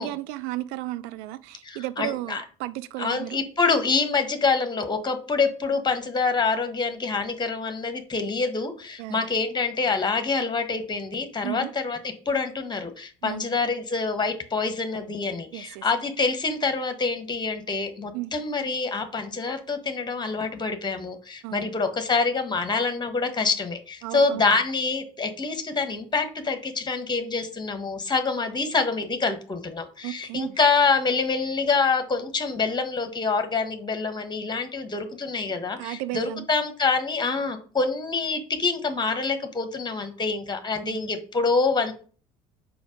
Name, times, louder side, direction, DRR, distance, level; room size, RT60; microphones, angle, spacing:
voice 1, 0.0-3.4 9.0-9.3 11.4-11.7 13.2-13.5 15.5-15.9 18.1-18.3 21.4-21.8 24.0-24.5 30.0-30.6 35.5-36.5 40.8-41.1, right 16 dB, 65° right, 0.4 m, -34 dB
voice 2, 1.6-2.4 3.0-12.0 12.2-41.9, left 4 dB, 20° left, 1.5 m, -26 dB
5.0 x 4.8 x 5.1 m
hypercardioid pair, 60°, 19 cm